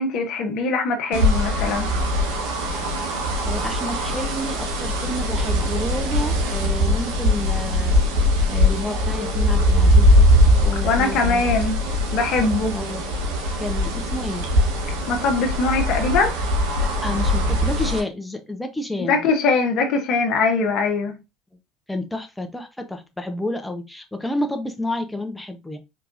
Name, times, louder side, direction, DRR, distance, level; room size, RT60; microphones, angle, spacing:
voice 1, 0.0-1.9 10.8-11.8 12.1-12.8 15.1-16.3 19.1-21.2, left 3 dB, 60° left, 1.0 m, -21 dB
sound 1, 1.1-18.0, left 1 dB, 75° right, 1.2 m, -21 dB
voice 2, 3.4-10.3 10.6-11.4 12.7-13.0 13.6-14.5 17.0-19.2 21.9-25.8, left 1 dB, 5° left, 0.9 m, -30 dB
4.5 x 3.4 x 2.5 m
hypercardioid pair, 75°, 0 cm